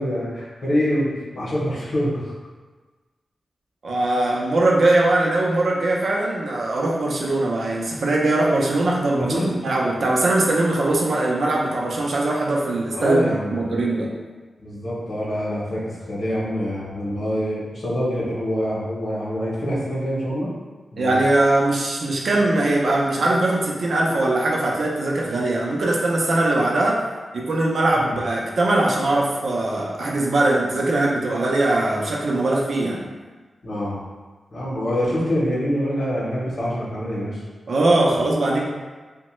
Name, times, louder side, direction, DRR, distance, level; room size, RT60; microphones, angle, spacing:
voice 1, 0.0-2.3 9.2-9.5 12.9-13.7 14.6-20.5 20.9-21.2 27.9-28.2 33.6-34.0 34.5-37.4, equal, 60° left, -6 dB, 0.7 m, -25 dB
voice 2, 3.8-14.1 21.0-27.0 27.3-33.1 37.7-38.7, right 2 dB, 70° right, -2 dB, 0.5 m, -21 dB
3.0 x 2.1 x 3.0 m, 1.3 s
wide cardioid pair, 120°, 0 cm